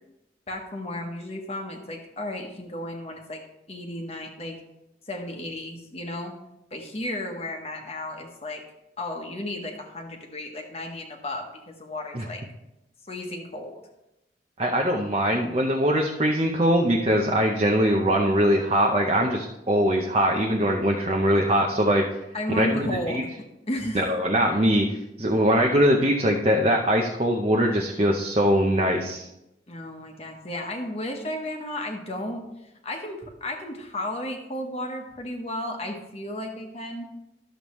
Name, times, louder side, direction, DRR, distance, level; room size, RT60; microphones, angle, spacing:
voice 1, 0.5-3.4 3.7-4.6 5.1-6.3 6.7-8.6 9.0-12.4 13.1-13.8 22.3-23.3 23.7-24.0 29.7-32.5 32.8-37.1, left 1 dB, 35° left, 2 dB, 1.1 m, -33 dB
voice 2, 14.6-22.0 22.6-23.2 23.9-29.3, equal, 35° right, 0 dB, 0.7 m, -22 dB
11.5 x 7.0 x 3.1 m, 0.88 s
head